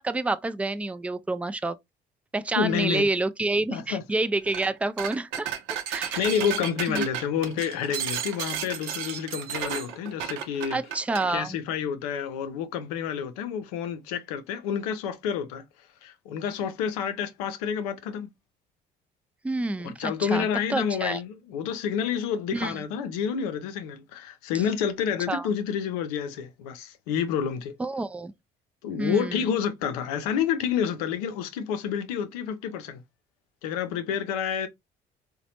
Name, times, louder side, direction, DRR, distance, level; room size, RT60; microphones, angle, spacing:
voice 1, 0.0-1.8 2.3-5.5 5.9-6.3 6.9-7.0 10.7-11.6 19.4-21.2 22.5-22.8 25.3-25.5 27.8-28.3 29.0-29.5, right 2 dB, 5° right, 0.3 m, -28 dB
voice 2, 2.6-3.1 3.7-4.0 6.2-10.8 11.3-15.6 16.0-18.3 19.8-27.7 28.8-33.0 33.6-34.7, left 8 dB, 85° left, 0.5 m, -29 dB
sound 1, 4.5-4.7 5.0-11.3, right 9 dB, 75° right, 0.6 m, -33 dB
3.9 x 2.2 x 2.8 m
hypercardioid pair, 65°, 19 cm